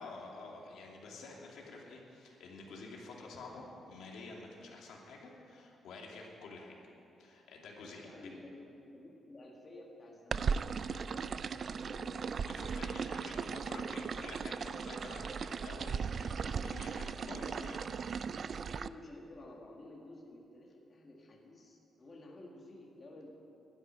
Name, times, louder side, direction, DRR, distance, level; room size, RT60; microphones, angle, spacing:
voice 1, 0.0-6.7 7.2-8.4 12.5-17.8, left 3 dB, 85° left, -2 dB, 2.7 m, -49 dB
voice 2, 8.0-12.3 13.1-13.2 16.9-17.9 18.6-23.3, left 2 dB, 25° left, -2 dB, 1.7 m, -53 dB
sound 1, 10.3-18.9, right 6 dB, 40° right, 0.3 m, -37 dB
12.0 x 10.0 x 9.7 m, 2.8 s
wide cardioid pair, 175°, 0 cm